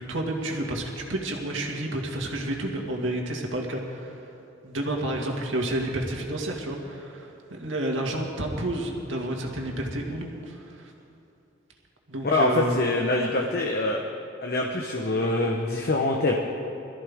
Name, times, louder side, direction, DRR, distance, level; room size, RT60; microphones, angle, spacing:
voice 1, 0.0-4.3 4.6-10.9 12.1-12.8, right 1 dB, 70° right, 0 dB, 2.1 m, -30 dB
voice 2, 12.2-14.0 14.4-16.3, left 2 dB, 50° left, 0 dB, 1.0 m, -24 dB
22.0 x 14.0 x 3.6 m, 2.8 s
head